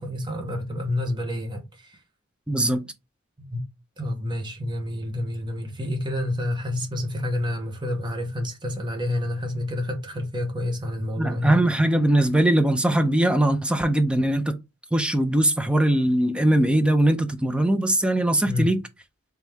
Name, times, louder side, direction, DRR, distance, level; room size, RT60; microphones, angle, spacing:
voice 1, 0.0-2.0 3.4-3.6 4.0-11.6 18.5-18.7, left 1 dB, 20° right, 0.9 m, -29 dB
voice 2, 2.5-2.9 11.2-14.6 14.9-18.8, right 1 dB, 5° right, 0.3 m, -21 dB
3.4 x 3.2 x 3.2 m
head